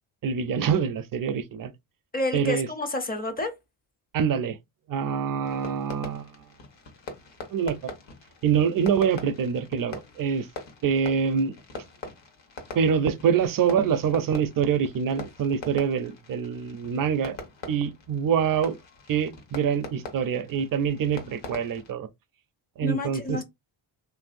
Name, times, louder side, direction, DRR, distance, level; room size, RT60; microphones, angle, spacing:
voice 1, 0.2-1.7 2.3-2.7 4.1-4.6 4.9-6.3 7.5-7.9 8.4-10.5 10.8-11.5 12.8-17.4 17.7-18.8 19.1-22.1 22.8-23.4, right 7 dB, 45° right, 0.4 m, -25 dB
voice 2, 2.1-3.5 22.8-23.4, left 2 dB, 20° left, 0.5 m, -29 dB
Fireworks, 5.4-21.9, left 3 dB, 60° left, 1.1 m, -43 dB
3.2 x 2.6 x 2.4 m
cardioid pair, 130°, 49 cm